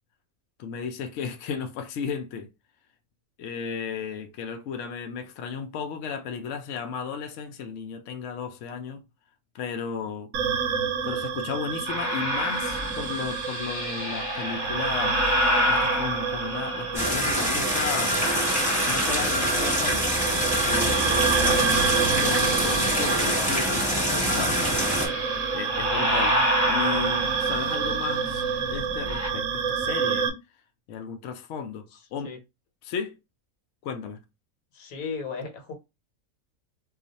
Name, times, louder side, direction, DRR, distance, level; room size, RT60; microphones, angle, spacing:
voice 1, 0.6-2.5 3.4-9.0 9.5-10.3 11.0-15.3 15.7-18.3 18.8-20.1 20.7-24.8 25.5-26.4 26.7-30.3 30.9-32.3 32.8-33.2 33.8-34.2, left 6 dB, 70° left, 0.8 m, -34 dB
sound 1, 10.3-30.3, right 6 dB, 75° right, 0.9 m, -28 dB
sound 2, 11.9-17.2 17.7-19.9 20.2-29.3, left 1 dB, 20° left, 0.4 m, -30 dB
sound 3, 16.9-25.1, equal, 5° left, 1.2 m, -25 dB
voice 2, 34.7-35.7, left 5 dB, 90° left, 1.3 m, -35 dB
2.4 x 2.4 x 3.9 m
omnidirectional pair, 1.4 m